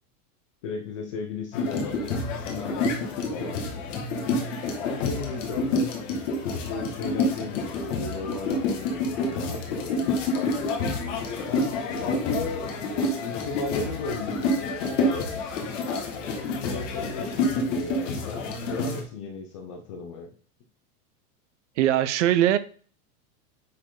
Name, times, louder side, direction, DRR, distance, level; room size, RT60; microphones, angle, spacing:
voice 1, 0.6-3.6 4.7-5.9 6.5-10.5 11.5-12.7 13.2-15.4 16.2-20.3, left 4 dB, 20° left, 0.5 m, -36 dB
Independence Day Drum Circle, 1.5-19.0, left 2 dB, 50° left, 2.0 m, -28 dB
voice 2, 21.8-22.6, right 12 dB, 50° right, 0.7 m, -21 dB
9.4 x 4.6 x 3.7 m
supercardioid pair, 175°, 46 cm